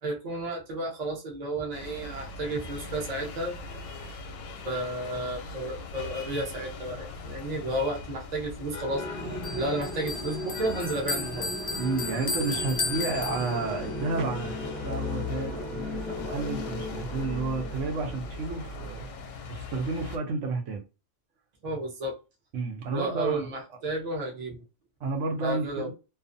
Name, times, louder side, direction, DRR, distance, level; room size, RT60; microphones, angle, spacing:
voice 1, 0.0-3.6 4.6-9.1 9.4-11.5 21.6-22.2 22.9-24.6 25.4-25.9, right 1 dB, 40° right, 0.7 m, -32 dB
sound 1, 1.7-20.2, left 3 dB, 90° left, 0.9 m, -40 dB
sound 2, 8.9-19.0, left 1 dB, ahead, 0.6 m, -37 dB
voice 2, 9.2-9.6 11.8-19.1 19.5-20.8 22.5-23.5 25.0-25.9, right 3 dB, 80° right, 1.0 m, -31 dB
Bell, 9.4-13.9, left 3 dB, 55° left, 0.5 m, -34 dB
2.4 x 2.4 x 2.5 m
omnidirectional pair, 1.3 m